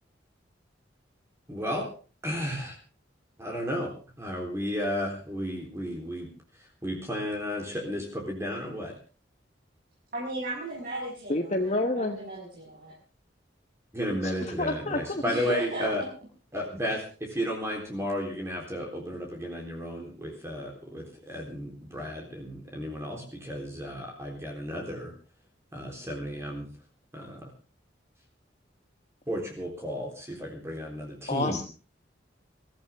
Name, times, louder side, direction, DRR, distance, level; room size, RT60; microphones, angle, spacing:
voice 1, 1.5-1.9 2.2-2.7 3.4-3.9 4.2-6.3 6.8-9.0 13.9-16.0 16.5-25.1 25.7-26.7 27.1-27.4 29.3-31.6, equal, 15° right, 0 dB, 3.8 m, -33 dB
voice 2, 10.1-12.9 15.2-15.9, right 1 dB, 50° right, -4 dB, 6.1 m, -36 dB
voice 3, 11.3-12.2 14.2-15.2 31.3-31.6, left 2 dB, 40° left, 4 dB, 1.3 m, -29 dB
23.0 x 14.5 x 3.6 m, 0.35 s
head